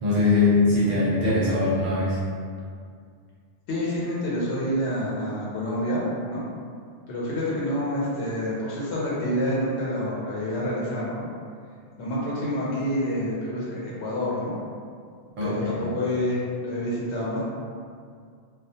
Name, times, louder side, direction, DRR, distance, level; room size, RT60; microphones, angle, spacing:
voice 1, 0.0-2.2 15.4-15.8, left 3 dB, 60° right, -8 dB, 0.6 m, -22 dB
voice 2, 3.7-6.4 7.1-11.3 12.0-14.5 15.4-17.5, equal, 80° left, -7 dB, 0.9 m, -28 dB
2.3 x 2.2 x 2.6 m, 2.2 s
omnidirectional pair, 1.1 m